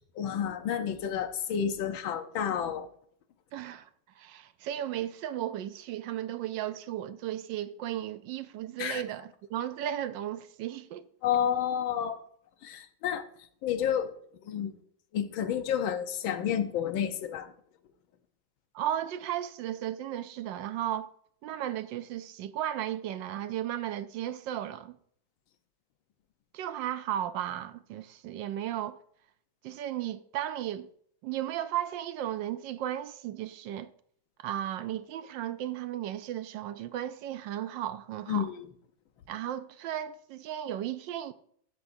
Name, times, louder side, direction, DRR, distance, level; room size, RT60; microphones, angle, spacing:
voice 1, 0.1-2.9 8.8-9.0 11.2-12.2 12.6-13.2 13.6-14.1 14.4-14.8 15.1-17.5 38.3-38.7, left 9 dB, 80° left, 1.7 m, -30 dB
voice 2, 3.5-3.9 4.2-11.1 18.7-21.1 21.4-25.0 26.5-29.0 29.6-30.9 31.2-33.9 34.4-38.5 39.3-41.3, right 11 dB, 75° right, 1.2 m, -35 dB
14.5 x 13.0 x 2.7 m
omnidirectional pair, 2.2 m